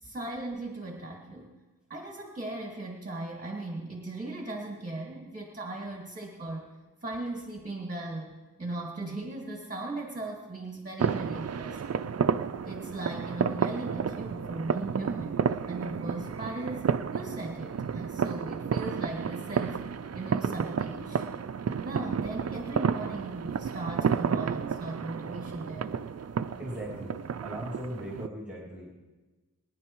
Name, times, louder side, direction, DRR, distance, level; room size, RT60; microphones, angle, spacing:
voice 1, 0.0-1.5 1.9-6.7 7.0-11.8 12.6-19.8 20.1-21.3 21.8-26.0, right 2 dB, 25° right, -1 dB, 1.8 m, -38 dB
sound 1, 11.0-28.3, right 7 dB, 50° right, 0.5 m, -31 dB
voice 2, 26.6-27.2 27.4-28.9, equal, 5° right, -6 dB, 3.0 m, -38 dB
23.5 x 10.5 x 3.1 m, 1.2 s
wide cardioid pair, 70°, 34 cm